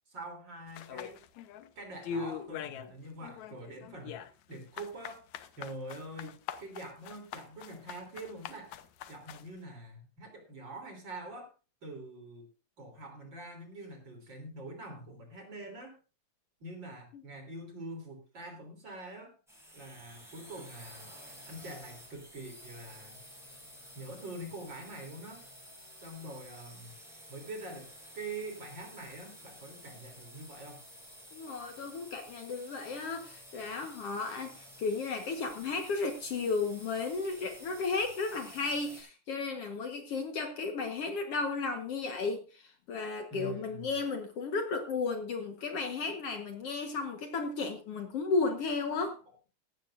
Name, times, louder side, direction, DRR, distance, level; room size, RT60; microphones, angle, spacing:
voice 1, 0.1-1.2 1.8-5.2 5.6-8.7 9.1-11.5 11.8-12.5 12.8-16.0 16.6-19.4 19.7-21.2 21.5-23.2 24.0-25.4 26.0-26.9 27.3-30.8 43.3-43.9, right 2 dB, 40° right, 4 dB, 3.7 m, -45 dB
sound 1, 0.7-1.7 2.0-2.9 3.2-9.5, left 7 dB, 75° left, 2.2 m, -42 dB
sound 2, 19.5-39.0, equal, ahead, 6.1 m, -52 dB
voice 2, 31.3-49.2, left 4 dB, 60° left, 5 dB, 2.1 m, -34 dB
16.5 x 13.0 x 2.5 m, 0.31 s
omnidirectional pair, 3.4 m